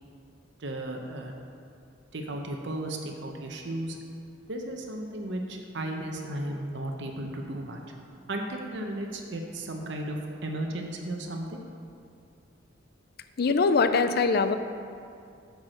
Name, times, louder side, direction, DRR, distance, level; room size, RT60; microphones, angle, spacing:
voice 1, 0.6-1.3 2.1-4.0 4.5-7.9 8.3-11.6, right 1 dB, 60° right, 2 dB, 0.8 m, -35 dB
voice 2, 13.4-14.6, left 4 dB, 50° left, 10 dB, 0.4 m, -22 dB
8.6 x 4.7 x 6.4 m, 2.4 s
head